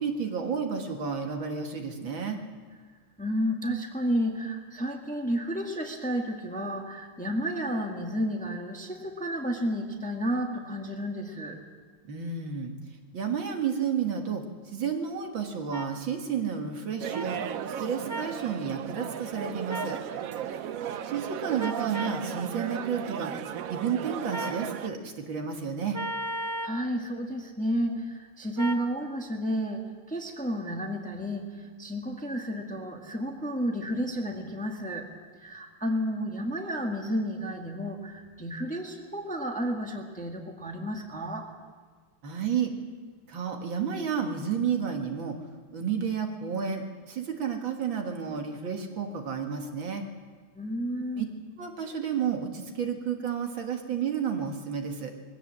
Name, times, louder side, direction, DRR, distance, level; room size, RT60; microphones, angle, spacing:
voice 1, 0.0-2.4 12.0-12.7 13.1-17.4 17.8-20.0 21.0-23.3 23.7-26.0 42.2-42.7 43.3-45.4 45.7-50.0 51.2-51.3 51.6-55.1, right 7 dB, 65° right, 3 dB, 2.3 m, -31 dB
voice 2, 3.2-11.6 20.5-21.1 26.6-35.1 35.4-41.5 50.5-51.3, equal, 5° left, 2 dB, 1.4 m, -31 dB
sound 1, 15.7-15.9 17.1-17.3 18.1-18.3 19.7-20.0 21.6-22.2 24.3-24.6 25.9-26.8 28.6-28.9, right 1 dB, 35° right, 0.4 m, -34 dB
sound 2, 17.0-24.9, right 9 dB, 80° right, 0.7 m, -35 dB
21.5 x 16.5 x 7.3 m, 1.5 s
omnidirectional pair, 2.3 m